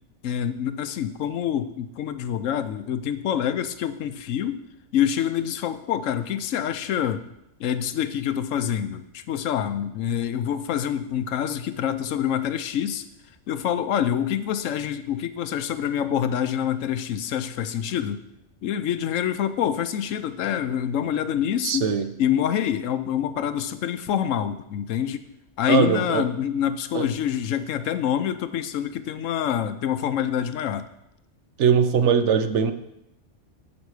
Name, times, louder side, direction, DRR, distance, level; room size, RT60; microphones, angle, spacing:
voice 1, 0.2-4.6 4.9-7.2 7.6-13.0 13.5-18.2 18.6-21.9 22.2-25.2 25.6-30.9, left 9 dB, 90° left, 11 dB, 1.0 m, -26 dB
voice 2, 21.6-22.1 25.7-26.2 26.9-27.1 31.6-32.7, right 7 dB, 70° right, 10 dB, 1.0 m, -21 dB
13.5 x 5.1 x 4.8 m, 0.84 s
omnidirectional pair, 1.3 m